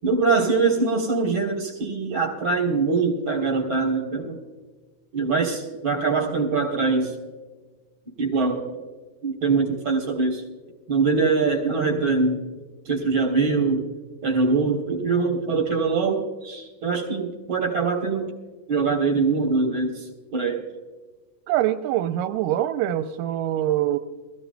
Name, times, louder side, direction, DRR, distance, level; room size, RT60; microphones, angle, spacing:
voice 1, 0.0-4.4 5.1-7.2 8.2-8.7 9.2-10.4 10.9-12.4 12.9-13.9 14.2-18.3 18.7-20.7, right 4 dB, 45° right, 0 dB, 4.5 m, -23 dB
voice 2, 21.5-24.0, right 12 dB, 85° right, 7 dB, 2.2 m, -24 dB
21.5 x 15.5 x 2.2 m, 1.3 s
omnidirectional pair, 3.8 m